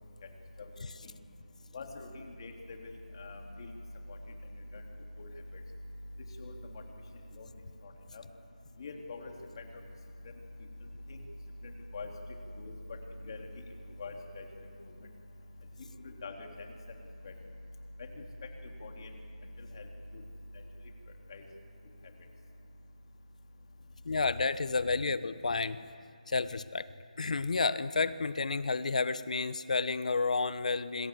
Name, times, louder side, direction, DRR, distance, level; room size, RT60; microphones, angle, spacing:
voice 1, 1.7-2.8 3.1-3.7 4.7-4.8 5.2-5.3 6.4-6.8 7.4-7.5 8.1-8.2 8.8-9.6 11.1-11.2 11.6-12.1 12.6-13.5 14.0-14.4 16.0-16.7 17.2-17.3 18.0-18.2 18.8-19.1 19.7-19.9 21.3-21.4, left 3 dB, 35° left, 2 dB, 3.6 m, -43 dB
voice 2, 24.0-25.8 26.3-26.9 27.2-31.1, left 4 dB, 60° left, 14 dB, 1.1 m, -31 dB
28.0 x 26.5 x 7.8 m, 2.3 s
figure-of-eight pair, 165°, 4 cm